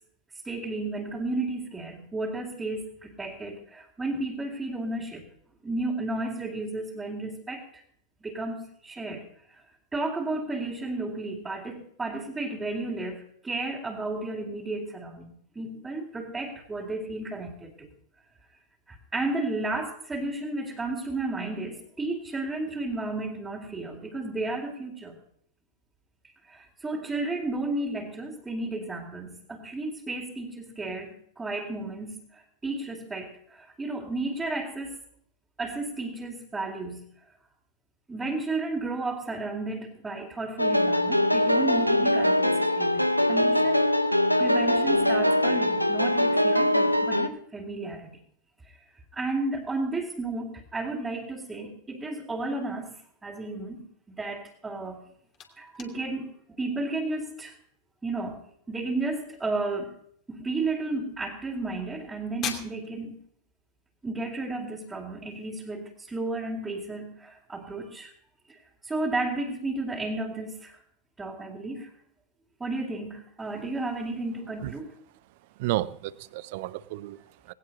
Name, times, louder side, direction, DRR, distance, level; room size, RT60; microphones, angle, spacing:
voice 1, 0.4-5.3 5.6-7.8 8.2-9.6 9.9-17.9 18.9-25.2 26.4-35.0 35.6-37.3 38.1-43.9 44.4-48.2 48.6-48.8 49.1-55.0 55.5-56.3 56.6-57.6 58.0-59.9 60.3-63.2 64.0-68.1 68.5-70.8 71.2-71.9 72.6-74.9, right 2 dB, 10° right, -5 dB, 2.7 m, -33 dB
sound 1, 40.6-47.3, left 1 dB, 90° left, 0.9 m, -22 dB
sound 2, 54.8-65.5, left 8 dB, 35° left, 2.7 m, -46 dB
voice 2, 75.6-77.5, right 17 dB, 50° right, 18 dB, 0.7 m, -32 dB
19.0 x 17.5 x 2.8 m, 0.65 s
figure-of-eight pair, 90°, 0 cm